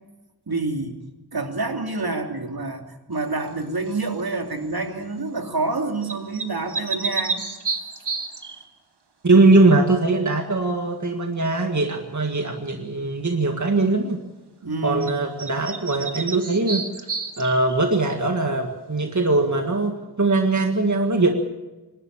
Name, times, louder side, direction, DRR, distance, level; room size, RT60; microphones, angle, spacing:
voice 1, 0.5-1.0 1.3-7.4 14.6-15.0, right 3 dB, 65° right, 4 dB, 2.9 m, -27 dB
sound 1, 3.9-4.2 6.0-8.6 15.0-15.1 15.4-17.8, right 4 dB, 85° right, 2.0 m, -30 dB
voice 2, 9.2-14.2 14.8-16.8 17.4-21.3, right 2 dB, 45° right, 4 dB, 1.9 m, -21 dB
26.0 x 12.5 x 8.8 m, 1.1 s
wide cardioid pair, 65°, 40 cm